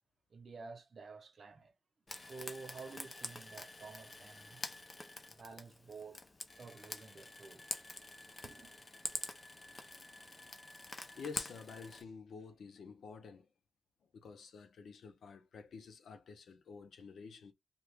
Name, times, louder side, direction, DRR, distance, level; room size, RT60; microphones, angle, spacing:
voice 1, 0.3-1.7 2.2-4.6 5.2-6.3 6.6-7.8 8.4-8.7, right 4 dB, 50° right, 0.8 m, -51 dB
Frying (food), 2.1-12.0, left 2 dB, 30° left, 0.6 m, -46 dB
voice 2, 11.1-13.5 14.1-17.5, left 5 dB, 70° left, 0.6 m, -50 dB
2.9 x 2.3 x 3.4 m
wide cardioid pair, 110°, 0 cm